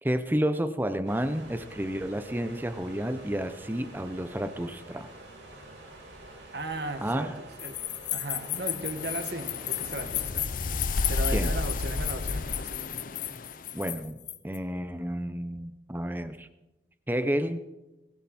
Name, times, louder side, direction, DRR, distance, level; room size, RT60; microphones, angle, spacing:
voice 1, 0.0-5.1 7.0-7.3 11.3-11.6 13.7-16.5 17.1-17.6, equal, 10° right, 11 dB, 0.8 m, -31 dB
sound 1, 1.1-10.3, right 1 dB, 90° right, 5.6 m, -48 dB
voice 2, 6.5-7.3 7.6-7.8 8.1-10.5 11.1-12.9, right 2 dB, 60° right, 6 dB, 1.9 m, -36 dB
sound 2, 7.6-14.6, left 14 dB, 70° left, 1.0 m, -34 dB
sound 3, 8.5-13.8, left 3 dB, 45° left, 0.6 m, -32 dB
19.5 x 13.0 x 4.3 m, 1.0 s
head